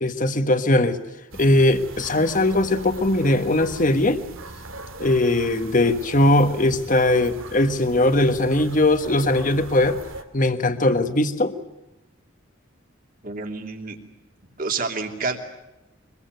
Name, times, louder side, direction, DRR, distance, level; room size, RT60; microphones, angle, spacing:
voice 1, 0.0-1.0 1.4-4.2 5.0-10.0 10.3-11.5, left 1 dB, 40° left, 9 dB, 1.5 m, -20 dB
sound 1, 1.3-10.2, right 2 dB, 85° right, 2.3 m, -40 dB
voice 2, 13.2-14.0 14.6-15.4, right 4 dB, 45° right, 5 dB, 2.8 m, -28 dB
24.5 x 22.0 x 7.9 m, 0.97 s
head